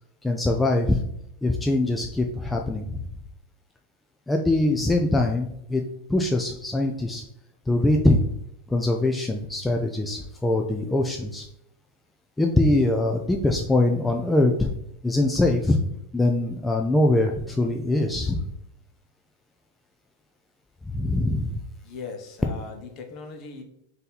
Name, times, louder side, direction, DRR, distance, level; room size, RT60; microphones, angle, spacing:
voice 1, 0.2-0.9 1.4-2.8 4.3-5.8 6.1-7.2 7.7-8.2 8.7-11.4 12.4-14.7 15.0-15.8 16.1-18.4 20.9-21.4, left 2 dB, 5° left, 1 dB, 0.3 m, -22 dB
voice 2, 21.8-23.6, left 4 dB, 40° left, 4 dB, 0.8 m, -39 dB
4.0 x 2.7 x 3.9 m, 0.76 s
supercardioid pair, 140°, 0 cm